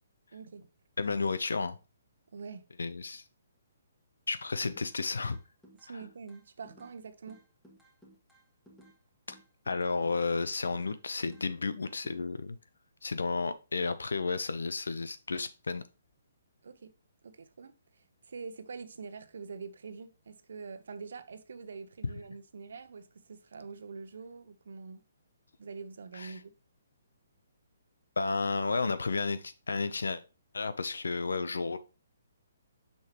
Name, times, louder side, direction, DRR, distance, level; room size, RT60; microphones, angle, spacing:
voice 1, 0.3-0.7 2.3-2.6 5.7-7.4 16.6-16.9 17.2-25.0 25.6-26.5, right 5 dB, 70° right, 0.9 m, -45 dB
voice 2, 1.0-1.8 2.8-3.2 4.3-5.4 9.3-9.4 9.7-12.6 13.0-15.8 26.2-26.3 28.2-30.2 30.5-31.8, left 4 dB, 85° left, 0.7 m, -32 dB
sound 1, 4.3-5.0 5.3-7.0 7.3-9.0 9.3-11.0 11.3-12.2, equal, 5° left, 1.9 m, -58 dB
6.7 x 5.6 x 3.0 m
hypercardioid pair, 145°, 0 cm